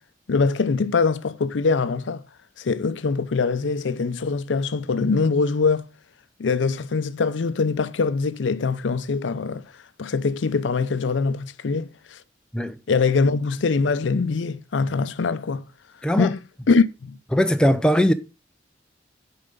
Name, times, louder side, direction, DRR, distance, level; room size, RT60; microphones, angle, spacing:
voice 1, 0.3-2.2 2.6-5.9 6.4-9.6 10.0-12.2 12.9-15.6 16.2-16.4 16.7-17.2, left 4 dB, 90° left, 0.5 m, -23 dB
voice 2, 16.0-16.3 17.3-18.1, equal, 5° left, 0.5 m, -19 dB
6.7 x 4.8 x 5.2 m
head